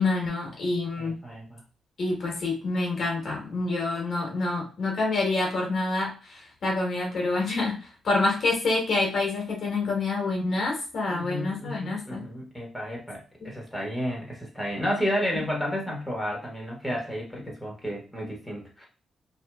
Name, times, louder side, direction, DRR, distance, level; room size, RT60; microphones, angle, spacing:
voice 1, 0.0-1.2 2.0-12.2 13.4-13.5, left 3 dB, 60° left, -2 dB, 1.1 m, -27 dB
voice 2, 1.0-1.6 11.1-13.2 13.4-18.9, equal, 5° left, -2 dB, 1.3 m, -32 dB
2.7 x 2.4 x 2.3 m, 0.36 s
supercardioid pair, 55°, 0 cm